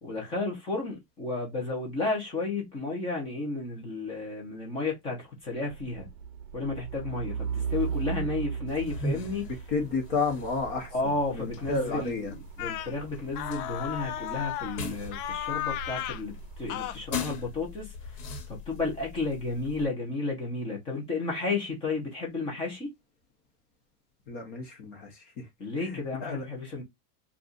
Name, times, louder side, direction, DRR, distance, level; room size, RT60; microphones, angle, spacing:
voice 1, 0.0-6.1 6.5-9.5 10.9-17.9 18.7-22.9 25.6-26.8, left 3 dB, 10° left, 0.5 m, -32 dB
Truck, 5.6-16.9, right 6 dB, 60° right, 0.6 m, -38 dB
sound 1, 8.7-19.9, left 2 dB, 90° left, 1.3 m, -40 dB
voice 2, 9.7-12.3 24.3-25.5 25.8-26.5, left 4 dB, 40° left, 0.9 m, -32 dB
sound 2, 12.6-12.9 13.4-14.8 15.1-16.2 16.7-17.0, left 12 dB, 70° left, 0.5 m, -34 dB
2.6 x 2.4 x 3.7 m
supercardioid pair, 175°, 47 cm